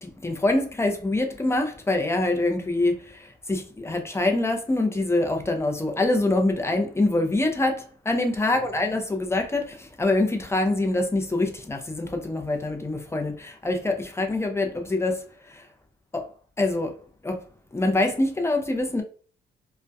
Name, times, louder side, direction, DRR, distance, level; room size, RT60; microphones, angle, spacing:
voice 1, 0.0-15.7 16.1-16.3 16.6-17.0 17.2-17.4 17.7-19.0, left 2 dB, 15° left, 0.5 m, -25 dB
2.6 x 2.1 x 2.2 m
cardioid pair, 90°, 20 cm